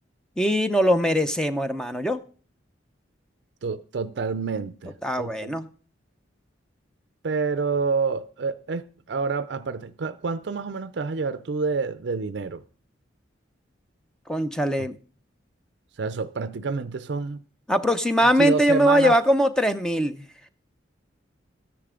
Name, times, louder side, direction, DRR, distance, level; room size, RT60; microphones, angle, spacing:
voice 1, 0.4-2.2 5.0-5.7 14.3-15.0 17.7-20.2, equal, 5° left, 0.6 m, -21 dB
voice 2, 3.6-5.6 7.2-12.6 16.0-17.4 18.2-19.2, right 4 dB, 60° right, 0.5 m, -28 dB
13.0 x 10.0 x 3.7 m
head